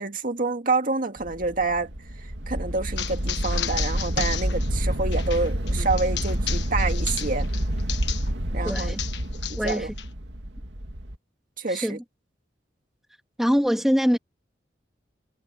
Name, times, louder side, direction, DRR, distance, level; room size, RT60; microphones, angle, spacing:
voice 1, 0.0-1.9 2.2-7.5 8.5-8.9 9.5-9.9 11.6-12.0, right 3 dB, 50° right, 2.1 m, -28 dB
sound 1, 1.2-11.2, equal, 80° right, 2.4 m, -28 dB
sound 2, 3.0-8.3 8.7-10.1, left 10 dB, 75° left, 1.5 m, -34 dB
Human voice, 3.3-4.2 5.1-7.0 8.0-8.1, right 1 dB, 30° right, 5.2 m, -52 dB
voice 2, 8.6-9.0 9.6-9.9 11.7-12.0 13.4-14.2, equal, ahead, 2.9 m, -23 dB
head